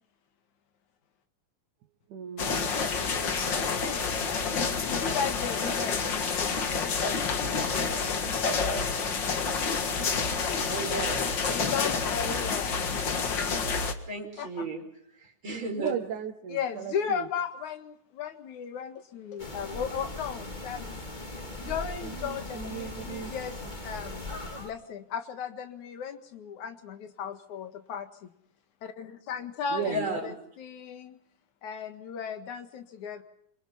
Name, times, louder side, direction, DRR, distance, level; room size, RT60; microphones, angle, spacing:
voice 1, 2.1-2.8 15.8-17.3 21.2-21.8 22.0-23.3 23.6-23.7 29.7-30.1, right 9 dB, 75° right, 3.0 m, -36 dB
sound 1, 2.4-13.9, left 5 dB, 40° left, 2.1 m, -28 dB
voice 2, 3.5-4.1 4.5-6.6 7.4-7.8 11.5-12.8 13.1-13.6 14.4-14.7 16.5-21.0 21.6-23.6 23.8-24.3 24.6-28.3 28.8-31.2 31.6-33.2, left 7 dB, 70° left, 3.1 m, -36 dB
voice 3, 10.7-11.2 14.1-14.8 15.4-15.9 29.8-30.3, right 2 dB, 40° right, 6.2 m, -33 dB
sound 2, 19.4-24.7, left 2 dB, 15° left, 2.2 m, -39 dB
26.5 x 25.0 x 5.7 m
omnidirectional pair, 3.5 m